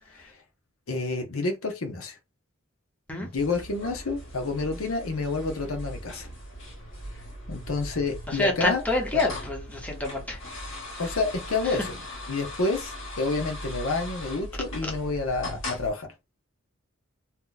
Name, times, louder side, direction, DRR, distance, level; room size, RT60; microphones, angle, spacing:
voice 1, 0.9-2.2 3.2-6.3 7.5-8.8 9.1-9.2 11.0-12.0 12.3-16.1, left 3 dB, 80° left, 0.9 m, -29 dB
sound 1, 3.4-15.9, left 1 dB, 65° left, 1.7 m, -39 dB
voice 2, 8.3-10.4 11.6-11.8, left 2 dB, 5° left, 1.0 m, -27 dB
2.9 x 2.3 x 3.9 m
head